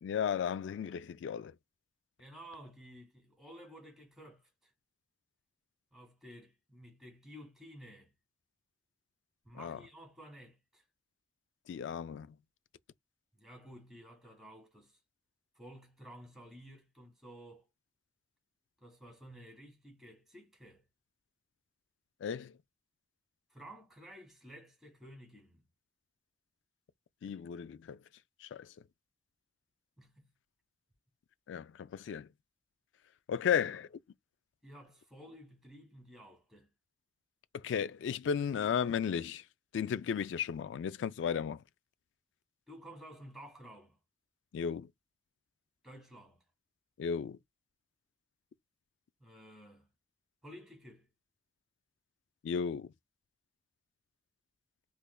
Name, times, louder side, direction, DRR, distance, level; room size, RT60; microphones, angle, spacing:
voice 1, 0.0-1.5 9.5-9.8 11.7-12.3 22.2-22.5 27.2-28.0 28.4-28.7 31.5-32.3 33.3-33.9 37.5-39.4 39.7-41.6 44.5-44.9 47.0-47.4 52.4-52.9, left 7 dB, 85° left, 0.3 m, -34 dB
voice 2, 2.2-4.7 5.9-8.1 9.4-10.8 13.3-15.0 15.5-17.6 18.8-20.8 23.5-25.6 30.0-30.3 33.5-33.7 34.6-36.7 42.7-44.0 45.8-46.4 49.2-49.9 50.4-51.1, equal, ahead, 1.6 m, -53 dB
3.6 x 3.1 x 2.2 m
head